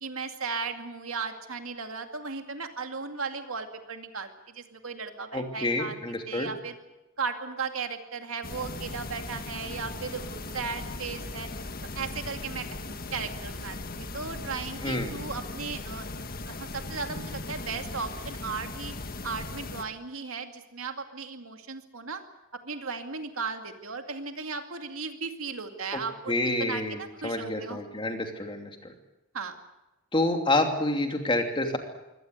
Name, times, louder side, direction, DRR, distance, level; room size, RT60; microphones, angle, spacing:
voice 1, 0.0-6.8 7.2-11.5 12.0-12.8 13.1-18.9 19.2-22.2 22.5-27.8 28.1-28.2 29.3-29.6, right 5 dB, 90° right, 6 dB, 2.3 m, -36 dB
voice 2, 5.3-6.5 14.8-15.1 25.9-26.0 26.3-27.0 27.2-28.7 30.1-31.8, left 2 dB, 25° left, 4 dB, 2.8 m, -28 dB
sound 1, 8.4-19.8, left 2 dB, 45° left, 1.6 m, -38 dB
23.5 x 18.0 x 8.0 m, 1.0 s
head